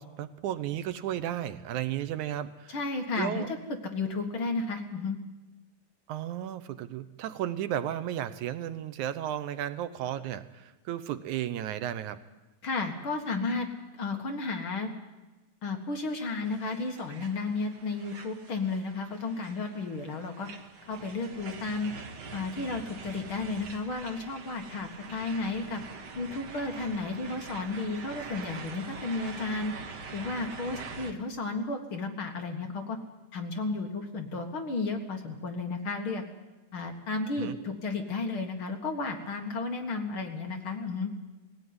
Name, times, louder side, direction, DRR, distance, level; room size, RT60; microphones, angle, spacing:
voice 1, 0.0-2.8 3.2-3.5 6.1-12.2 37.4-37.6, right 11 dB, 80° right, 13 dB, 2.3 m, -34 dB
voice 2, 2.7-3.4 3.9-5.2 12.6-13.7 14.0-14.9 15.6-20.5 20.9-21.9 22.3-25.8 26.2-29.7 30.1-33.0 33.3-36.2 36.7-41.1, left 3 dB, 50° left, 4 dB, 2.2 m, -33 dB
sound 1, 16.4-31.1, right 4 dB, 45° right, 1.6 m, -44 dB
19.5 x 16.0 x 9.6 m, 1.1 s
omnidirectional pair, 3.4 m